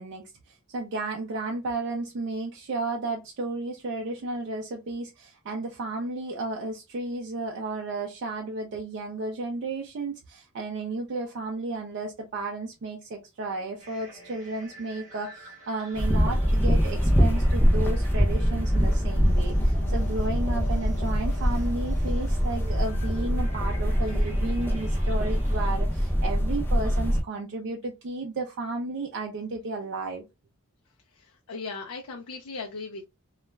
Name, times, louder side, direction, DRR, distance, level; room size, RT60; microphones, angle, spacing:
voice 1, 0.0-30.2, right 2 dB, 55° right, 0.4 m, -33 dB
sound 1, 13.8-25.8, left 1 dB, 35° right, 0.9 m, -47 dB
sound 2, 15.9-27.2, equal, 10° left, 0.6 m, -24 dB
voice 2, 31.1-33.0, left 4 dB, 70° left, 0.5 m, -38 dB
2.3 x 2.1 x 3.1 m
head